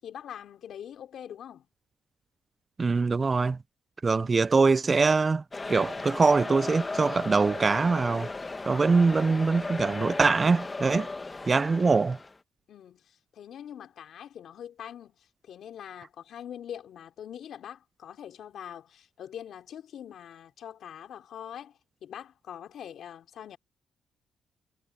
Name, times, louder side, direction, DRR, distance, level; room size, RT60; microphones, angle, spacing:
voice 1, 0.0-1.7 4.1-4.3 12.7-23.6, left 9 dB, 65° left, 3.4 m, -43 dB
voice 2, 2.8-3.6 4.0-5.4 5.7-8.3 8.7-11.1 11.5-12.2, right 4 dB, 30° right, 0.3 m, -23 dB
sound 1, 5.5-12.3, left 3 dB, 25° left, 1.5 m, -36 dB
cardioid pair, 90°, 0 cm